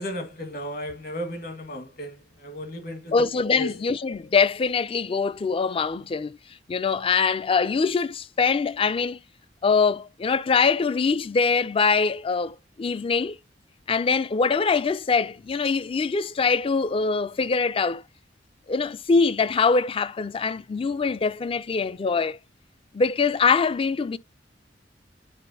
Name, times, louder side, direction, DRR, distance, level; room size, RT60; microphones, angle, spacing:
voice 1, 0.0-3.8, equal, 55° left, 1.7 m, -35 dB
voice 2, 3.1-6.4 6.7-9.2 9.6-13.4 13.9-18.0 18.7-22.4 22.9-24.2, left 5 dB, 30° left, 0.4 m, -23 dB
8.8 x 4.5 x 2.7 m
head